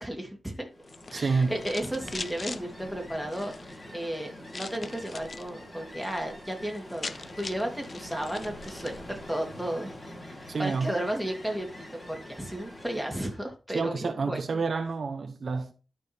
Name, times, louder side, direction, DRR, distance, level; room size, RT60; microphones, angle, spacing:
voice 1, 0.0-0.7 1.1-9.9 10.2-14.6, right 1 dB, ahead, 2.3 m, -34 dB
Ocean, 0.7-13.5, left 1 dB, 25° left, 3.2 m, -45 dB
sound 1, 0.8-2.6 3.2-3.8 4.5-5.5 5.8-6.2 6.5-6.6 6.8-9.0, left 4 dB, 45° left, 0.5 m, -41 dB
voice 2, 1.1-1.6 10.5-10.9 13.7-15.7, right 4 dB, 60° right, 0.8 m, -28 dB
12.0 x 4.7 x 3.4 m
cardioid pair, 70°, 0 cm